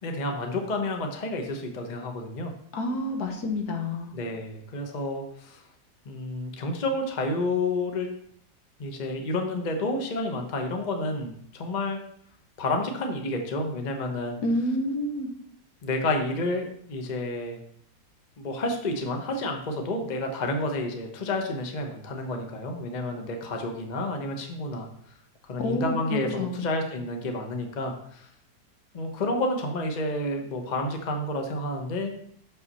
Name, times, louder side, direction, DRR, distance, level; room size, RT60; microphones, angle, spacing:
voice 1, 0.0-2.5 4.1-5.6 6.0-8.1 8.8-12.0 12.6-14.4 15.8-17.6 18.4-24.9 25.4-28.3 28.9-32.1, left 2 dB, 30° left, 3 dB, 0.9 m, -30 dB
voice 2, 2.7-4.2 14.4-15.3 25.6-26.7, left 1 dB, 65° left, 3 dB, 1.6 m, -29 dB
6.4 x 5.9 x 5.4 m, 0.66 s
omnidirectional pair, 1.9 m